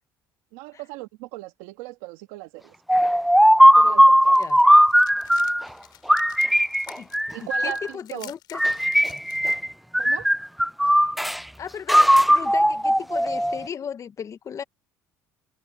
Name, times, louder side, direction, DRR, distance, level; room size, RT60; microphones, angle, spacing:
voice 1, 0.5-2.7 3.5-4.2 7.3-8.3 10.0-10.3, right 21 dB, 90° right, 1.5 m, -38 dB
sound 1, 2.9-5.7 6.1-7.9 8.5-9.7 9.9-11.4 11.9-13.7, equal, ahead, 0.3 m, -18 dB
sound 2, 4.2-9.6, left 13 dB, 65° left, 6.5 m, -48 dB
voice 2, 7.4-8.6 11.6-14.6, left 7 dB, 45° left, 1.3 m, -36 dB
supercardioid pair, 85°, 8 cm